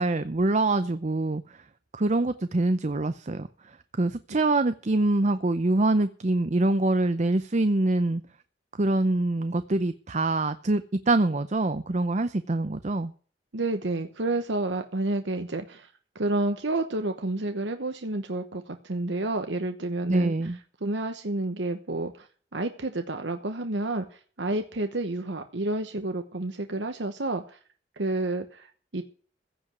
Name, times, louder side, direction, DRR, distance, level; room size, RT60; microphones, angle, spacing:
voice 1, 0.0-1.6 1.9-8.2 8.8-13.1 20.1-20.6, right 2 dB, 40° right, 11 dB, 0.7 m, -25 dB
voice 2, 13.5-20.5 20.8-27.6 28.0-29.0, right 2 dB, 85° right, 7 dB, 1.1 m, -30 dB
15.5 x 5.2 x 9.5 m, 0.44 s
head